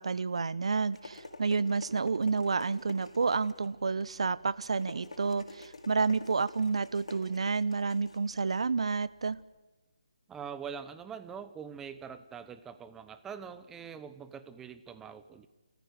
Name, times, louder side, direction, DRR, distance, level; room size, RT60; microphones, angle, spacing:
voice 1, 0.0-9.4, right 4 dB, 70° right, 19 dB, 0.8 m, -30 dB
sound 1, 0.6-9.4, left 2 dB, 75° left, 4.4 m, -49 dB
voice 2, 10.3-15.5, right 7 dB, 10° right, 12 dB, 0.9 m, -43 dB
26.5 x 14.5 x 9.6 m, 1.1 s
figure-of-eight pair, 155°, 3 cm